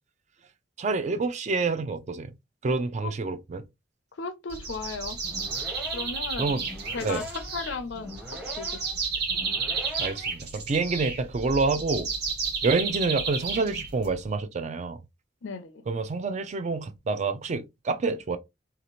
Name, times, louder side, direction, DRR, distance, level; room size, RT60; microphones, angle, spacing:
voice 1, 0.8-2.3 2.6-3.6 6.4-6.6 7.0-7.2 10.0-12.1 12.6-15.0 15.9-18.4, right 3 dB, 40° right, 0.4 m, -27 dB
voice 2, 4.2-5.2 5.9-6.6 6.9-7.2 7.5-8.2 8.6-9.1 15.4-15.8, left 4 dB, 80° left, 0.5 m, -35 dB
sound 1, 4.5-14.3, right 4 dB, 60° right, 1.3 m, -32 dB
sound 2, 5.2-10.4, left 1 dB, 10° right, 0.7 m, -42 dB
2.8 x 2.4 x 2.9 m
head